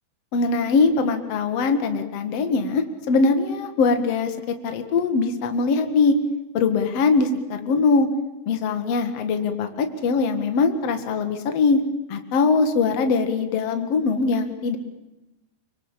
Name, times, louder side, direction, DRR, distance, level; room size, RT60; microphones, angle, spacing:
voice 1, 0.3-6.2 6.5-8.1 8.5-11.8 12.1-14.8, left 4 dB, 50° left, 7 dB, 2.1 m, -22 dB
24.5 x 24.5 x 7.4 m, 1.0 s
omnidirectional pair, 5.2 m